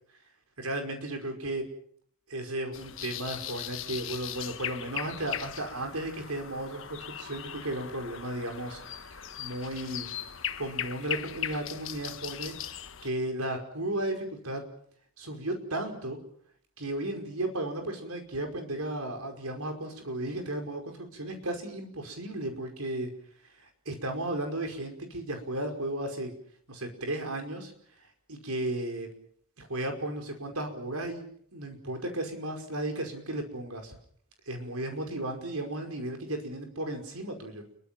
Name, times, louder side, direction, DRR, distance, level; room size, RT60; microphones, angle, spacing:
voice 1, 0.6-1.6 2.3-10.1 10.6-12.5 13.0-14.6 15.2-16.2 16.8-23.1 23.8-26.3 26.7-27.7 28.3-29.1 29.6-33.9 34.5-37.6, right 1 dB, 85° right, 4 dB, 5.2 m, -34 dB
sound 1, 2.7-13.1, left 10 dB, 60° left, 1.4 m, -39 dB
29.0 x 23.0 x 6.1 m, 0.63 s
head